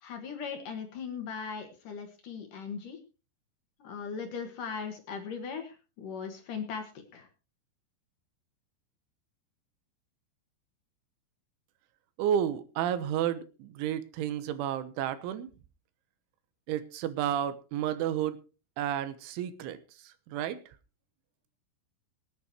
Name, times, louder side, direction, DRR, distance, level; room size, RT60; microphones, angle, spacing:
voice 1, 0.0-3.0 3.8-7.3, left 6 dB, 60° left, 5 dB, 2.6 m, -39 dB
voice 2, 12.2-15.5 16.7-18.4 18.8-19.8 20.3-20.6, right 10 dB, 85° right, 12 dB, 3.4 m, -31 dB
24.0 x 9.6 x 3.0 m, 0.32 s
omnidirectional pair, 5.5 m